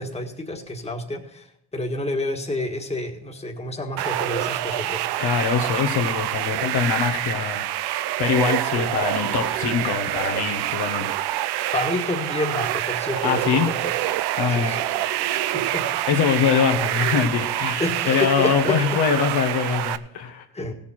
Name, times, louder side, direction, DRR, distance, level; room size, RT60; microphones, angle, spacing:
voice 1, 0.0-5.0 8.7-9.1 11.7-13.9 14.5-15.0 15.5-16.0 17.8-19.0 20.5-20.7, left 2 dB, 15° left, 2 dB, 1.6 m, -29 dB
sound 1, 4.0-20.0, right 13 dB, 90° right, 0.6 m, -26 dB
voice 2, 5.2-7.7 8.2-11.1 13.2-13.7 14.4-14.7 16.1-20.4, left 7 dB, 85° left, 4 dB, 1.5 m, -23 dB
16.0 x 7.1 x 4.3 m, 0.77 s
cardioid pair, 95°, 38 cm